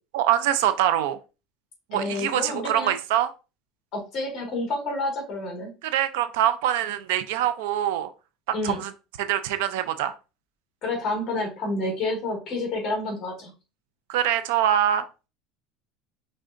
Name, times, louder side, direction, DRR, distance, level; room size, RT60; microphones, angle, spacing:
voice 1, 0.1-1.2 1.9-3.3 5.8-8.1 8.6-8.9 9.2-10.1 14.1-15.0, right 11 dB, 80° right, 11 dB, 0.5 m, -24 dB
voice 2, 1.9-2.9 3.9-5.7 8.5-8.8 10.8-13.5, left 2 dB, 35° left, 1 dB, 1.8 m, -29 dB
5.0 x 3.3 x 2.5 m, 0.30 s
cardioid pair, 170°, 0 cm